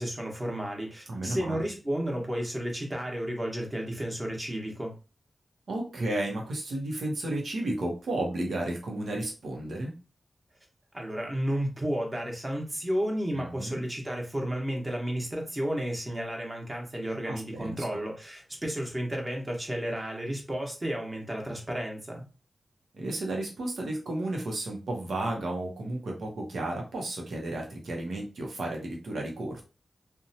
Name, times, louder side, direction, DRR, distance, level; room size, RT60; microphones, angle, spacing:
voice 1, 0.0-5.0 10.9-22.2, equal, 25° right, 0 dB, 0.9 m, -32 dB
voice 2, 1.1-1.7 5.7-9.9 13.3-13.8 17.2-18.0 22.9-29.6, right 1 dB, 85° right, 0 dB, 0.7 m, -33 dB
2.7 x 2.1 x 2.7 m, 0.32 s
wide cardioid pair, 80°, 0 cm